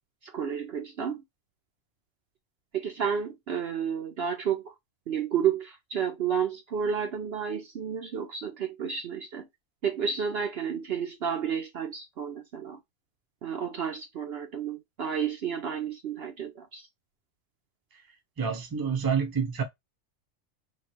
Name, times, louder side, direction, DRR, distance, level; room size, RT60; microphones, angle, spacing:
voice 1, 0.2-1.2 2.7-4.7 5.1-9.5 9.8-12.8 13.4-16.9, right 7 dB, 60° right, 0.8 m, -31 dB
voice 2, 18.4-19.6, right 6 dB, 20° right, 0.6 m, -28 dB
3.1 x 2.4 x 4.2 m
omnidirectional pair, 1.4 m